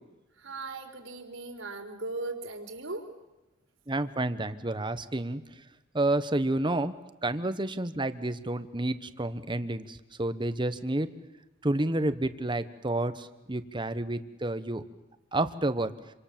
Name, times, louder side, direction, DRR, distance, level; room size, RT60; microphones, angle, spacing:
voice 1, 0.4-3.1, right 3 dB, 85° right, 2 dB, 4.3 m, -38 dB
voice 2, 3.9-5.4 5.9-7.0 7.2-11.1 11.6-14.8 15.3-15.9, right 1 dB, 25° right, 11 dB, 1.2 m, -30 dB
27.5 x 25.5 x 7.5 m, 1.0 s
head